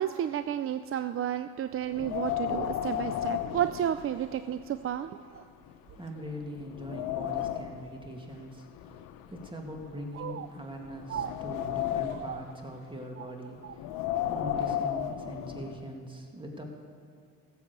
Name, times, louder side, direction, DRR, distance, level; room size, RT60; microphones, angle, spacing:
voice 1, 0.0-5.4 10.1-10.5 11.1-11.3 12.1-12.4 13.2-13.3 13.6-13.7, right 10 dB, 40° right, 11 dB, 0.4 m, -32 dB
Wind, 1.9-4.5 4.9-5.0 5.7-5.8 6.3-7.9 8.7-10.3 10.8-12.4 13.7-15.8, left 11 dB, 80° left, 0.7 m, -34 dB
voice 2, 6.0-13.9 14.3-16.6, equal, 15° right, 1 dB, 2.3 m, -42 dB
15.5 x 7.4 x 6.7 m, 2.3 s
supercardioid pair, 70°, 36 cm